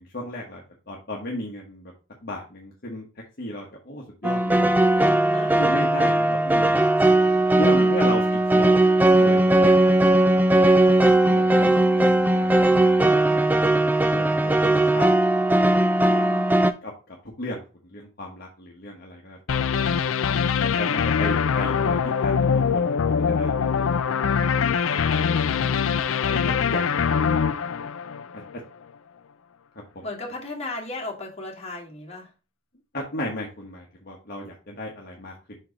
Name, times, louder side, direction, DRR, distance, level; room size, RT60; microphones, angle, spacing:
voice 1, 0.0-1.9 2.2-3.1 3.4-5.2 5.6-7.2 7.6-8.8 9.2-10.4 11.1-13.5 14.1-15.1 16.8-17.6 17.9-19.6 20.6-23.0 23.2-24.1 24.5-25.3 26.3-27.0 27.3-27.5 28.3-28.4 32.9-35.3, left 1 dB, 50° left, -2 dB, 1.2 m, -35 dB
sound 1, 4.2-16.7, right 1 dB, 10° right, 0.4 m, -18 dB
voice 2, 5.3-5.9 7.7-8.3 16.0-16.7 30.0-32.3, left 2 dB, 30° left, -2 dB, 2.1 m, -36 dB
sound 2, 19.5-28.5, left 6 dB, 75° left, 0.5 m, -23 dB
5.5 x 4.5 x 5.0 m, 0.33 s
head